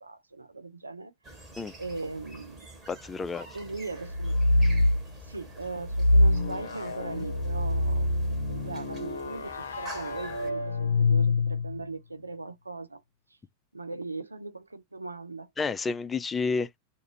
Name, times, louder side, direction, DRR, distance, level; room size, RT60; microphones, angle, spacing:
voice 1, 0.0-1.1 1.8-2.7 3.5-4.4 5.2-13.0 13.7-15.5, right 3 dB, 80° right, 0.4 m, -39 dB
sound 1, 1.2-10.5, right 2 dB, 20° right, 1.2 m, -47 dB
voice 2, 2.9-3.5 4.6-4.7 15.6-16.8, left 4 dB, 15° left, 0.3 m, -30 dB
sound 2, 4.1-5.0 5.9-11.9, left 2 dB, 70° left, 0.6 m, -25 dB
2.5 x 2.4 x 3.0 m
figure-of-eight pair, 90°, 0 cm